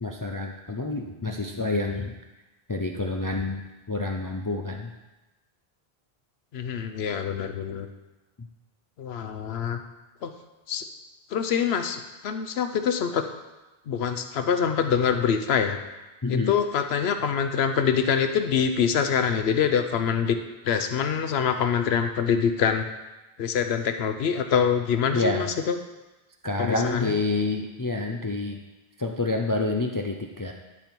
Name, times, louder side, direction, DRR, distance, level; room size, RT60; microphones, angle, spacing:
voice 1, 0.0-2.1 2.7-4.9 8.4-8.5 16.2-16.6 25.1-25.5 26.4-28.6 29.0-30.5, left 2 dB, 30° left, 2 dB, 0.4 m, -28 dB
voice 2, 6.5-7.9 9.0-9.8 10.2-10.3 10.7-10.8 11.3-13.2 13.9-15.8 16.3-20.4 20.6-22.9 23.4-25.8 26.6-27.1, left 7 dB, 90° left, 8 dB, 0.9 m, -25 dB
11.0 x 5.4 x 4.5 m, 1.1 s
omnidirectional pair, 1.0 m